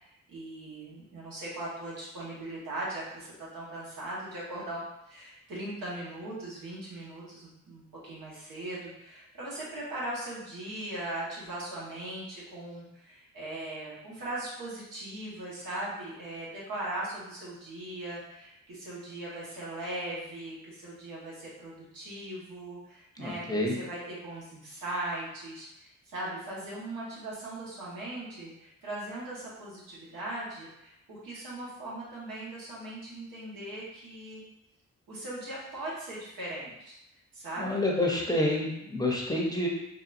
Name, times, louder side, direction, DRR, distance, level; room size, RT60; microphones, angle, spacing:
voice 1, 0.0-34.4 35.1-37.0 37.3-38.3, right 1 dB, 80° right, -6 dB, 1.4 m, -39 dB
voice 2, 23.2-23.7 37.6-39.7, left 1 dB, 10° left, -2 dB, 0.7 m, -28 dB
4.0 x 2.3 x 2.6 m, 0.87 s
cardioid pair, 60°, 33 cm